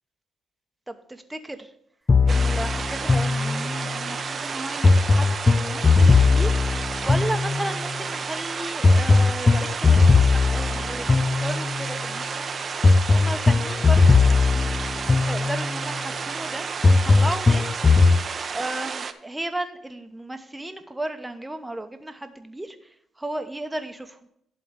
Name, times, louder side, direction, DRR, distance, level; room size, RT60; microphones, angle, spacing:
voice 1, 0.9-1.7 2.2-6.6 7.0-12.6 13.1-14.7 15.3-17.8 18.5-24.2, right 1 dB, 10° right, 7 dB, 1.0 m, -34 dB
sound 1, 2.1-4.0 4.8-7.9 8.8-11.9 12.8-15.9 16.8-18.2, left 4 dB, 30° left, 0.4 m, -19 dB
sound 2, 2.3-19.1, right 5 dB, 45° right, 0.7 m, -32 dB
11.5 x 3.9 x 6.3 m, 0.75 s
cardioid pair, 90°, 0 cm